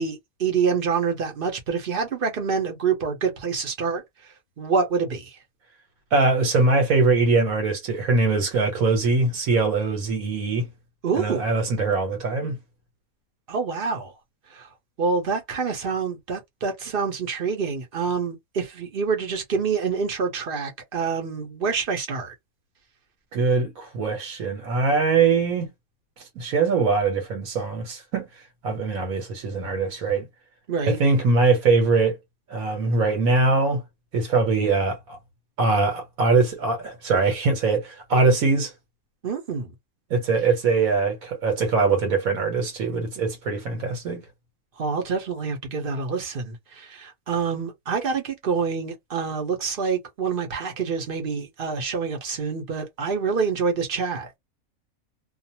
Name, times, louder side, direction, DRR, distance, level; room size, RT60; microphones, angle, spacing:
voice 1, 0.0-4.0 4.6-5.3 11.0-11.5 13.5-14.1 14.5-14.7 15.0-22.3 30.7-31.0 39.2-39.7 44.8-54.4, right 5 dB, 45° right, 0.9 m, -26 dB
voice 2, 6.1-10.7 11.1-12.6 23.3-25.7 26.2-28.3 28.6-30.3 30.8-32.2 32.5-33.8 34.1-35.2 35.6-38.7 40.1-44.2, right 3 dB, 80° right, 1.3 m, -22 dB
2.5 x 2.4 x 2.8 m
omnidirectional pair, 1.5 m